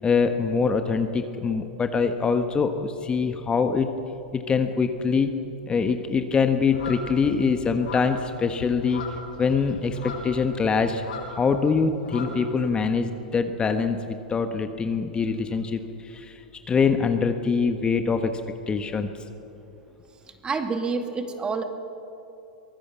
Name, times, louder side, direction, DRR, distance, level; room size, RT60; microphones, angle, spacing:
voice 1, 0.0-3.9 4.3-5.3 5.7-9.0 9.4-16.4 16.7-18.4 18.7-19.1, left 5 dB, 20° left, 7 dB, 1.4 m, -24 dB
sound 1, 6.7-11.6 11.9-12.9, left 3 dB, 75° left, 7.3 m, -39 dB
voice 2, 20.3-21.6, right 4 dB, 20° right, 6 dB, 2.3 m, -28 dB
23.5 x 19.0 x 7.4 m, 2.8 s
hypercardioid pair, 100°, 5 cm